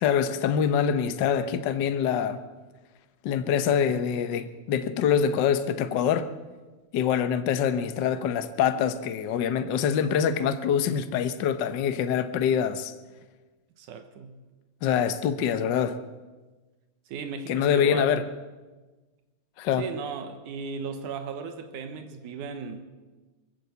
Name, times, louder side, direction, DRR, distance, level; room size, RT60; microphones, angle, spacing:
voice 1, 0.0-2.4 3.2-6.3 6.9-12.9 14.8-16.0 17.5-18.2 19.6-19.9, left 8 dB, 80° left, 1.0 m, -25 dB
voice 2, 13.8-14.4 17.1-18.2 19.8-22.8, right 5 dB, 90° right, 2.8 m, -36 dB
21.0 x 15.5 x 8.1 m
omnidirectional pair, 3.4 m